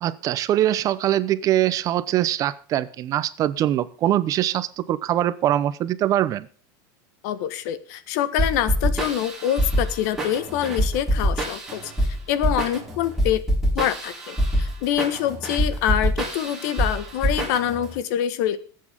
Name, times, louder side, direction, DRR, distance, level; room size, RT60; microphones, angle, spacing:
voice 1, 0.0-6.5, right 12 dB, 30° right, 16 dB, 0.8 m, -23 dB
voice 2, 7.2-13.4 13.7-18.6, left 10 dB, 60° left, 14 dB, 1.5 m, -25 dB
sound 1, 8.4-17.9, equal, 5° right, 3.9 m, -25 dB
20.5 x 8.6 x 3.6 m, 0.41 s
supercardioid pair, 160°, 11 cm